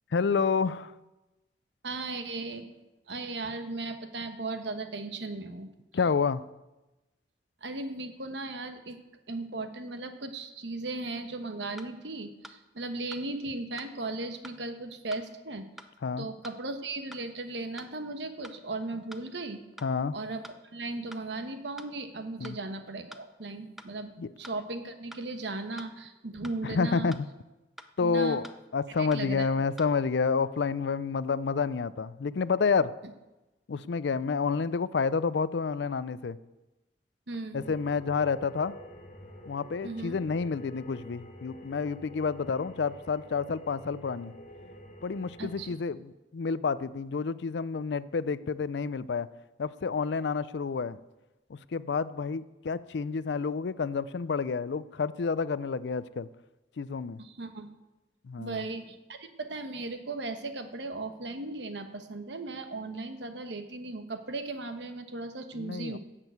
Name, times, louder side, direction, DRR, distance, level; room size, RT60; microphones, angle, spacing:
voice 1, 0.1-0.9 5.9-6.4 16.0-16.3 19.8-20.1 22.4-22.6 24.2-24.3 26.6-27.2 28.0-32.9 33.7-36.4 37.5-38.7 39.5-44.3 45.0-49.3 49.6-51.0 51.5-56.3 56.8-57.2 58.2-58.6 65.6-66.0, left 5 dB, 70° left, 17 dB, 0.4 m, -29 dB
voice 2, 1.8-2.7 3.1-5.7 7.6-9.0 9.3-15.7 16.2-19.6 20.1-27.1 28.0-28.4 28.9-29.7 37.3-37.6 39.8-40.2 45.4-45.7 57.2-57.7 58.4-66.0, right 2 dB, 75° right, 7 dB, 1.2 m, -37 dB
sound 1, 11.1-11.2 11.8-11.9 12.4-12.6 13.1-13.2 13.8-13.9 14.4-14.6 15.1-15.2 15.8-15.9 16.4-16.6 17.1-17.2 17.8-17.9 18.4-18.6 19.1-19.2 19.8-19.9 20.4-20.6 21.1-21.2 21.8-21.9 22.4-22.6 23.1-23.2 23.8-23.9 24.4-24.6 25.1-25.2 25.8-25.9 26.4-26.6 27.1-27.2 27.8-27.9 28.4-28.6 29.1-29.2 29.8-29.9, equal, ahead, 0.5 m, -47 dB
sound 2, 37.6-45.7, left 1 dB, 45° left, 1.5 m, -49 dB
10.5 x 7.5 x 8.0 m, 1.1 s
head